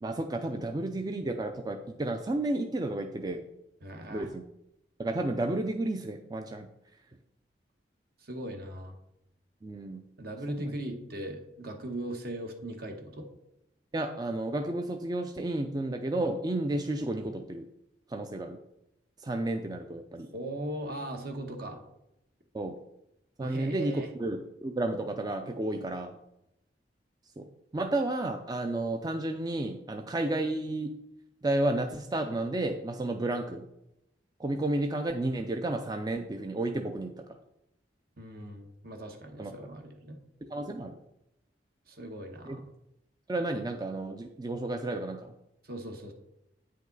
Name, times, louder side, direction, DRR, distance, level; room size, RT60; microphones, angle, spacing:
voice 1, 0.0-3.4 4.1-4.4 5.0-6.7 9.6-10.0 10.6-10.7 13.9-17.6 18.1-18.6 19.2-20.3 22.5-22.7 23.4-26.1 27.4-27.5 27.7-30.9 31.4-33.7 34.4-37.4 39.4-39.5 40.4-41.0 42.5-42.6 43.3-45.3, right 2 dB, 20° right, 5 dB, 0.4 m, -32 dB
voice 2, 3.8-4.3 8.2-8.9 10.2-13.3 20.3-21.8 23.4-24.1 38.2-40.2 41.9-42.7 45.6-46.1, right 1 dB, 60° right, 4 dB, 1.2 m, -39 dB
8.8 x 5.1 x 4.0 m, 0.86 s
head